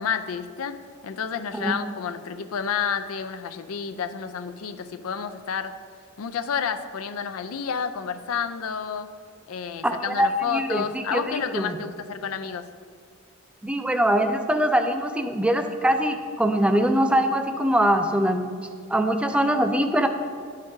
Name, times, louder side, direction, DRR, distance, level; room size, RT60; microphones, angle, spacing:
voice 1, 0.0-5.8 6.2-9.1 9.5-12.7, left 7 dB, 85° left, 9 dB, 0.4 m, -30 dB
voice 2, 9.8-10.8 11.1-11.8 13.6-18.5 18.9-20.1, equal, 5° right, 6 dB, 0.4 m, -22 dB
11.5 x 5.2 x 2.6 m, 2.1 s
head